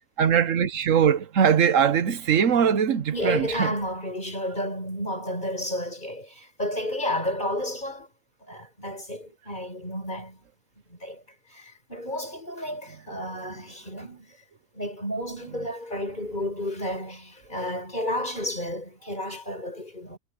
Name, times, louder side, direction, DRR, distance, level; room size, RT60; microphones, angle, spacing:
voice 1, 0.2-3.8, right 8 dB, 80° right, 1.3 m, -21 dB
voice 2, 3.1-8.1 8.5-10.4 10.9-11.2 11.5-14.3 14.7-20.2, left 1 dB, 35° left, 7.6 m, -32 dB
omnidirectional pair, 1.3 m